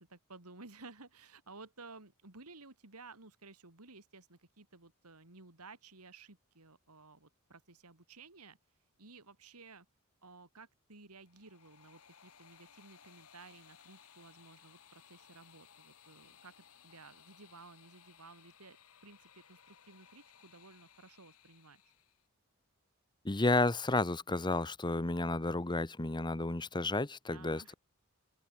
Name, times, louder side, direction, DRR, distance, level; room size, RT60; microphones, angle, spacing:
voice 1, 0.0-8.6 9.0-9.9 10.2-18.8 19.0-21.8 27.3-27.8, right 3 dB, 85° right, 3.2 m, -55 dB
sound 1, 11.1-22.3, left 8 dB, 80° left, 3.4 m, -61 dB
voice 2, 23.2-27.7, left 2 dB, 20° left, 1.0 m, -32 dB
open air
head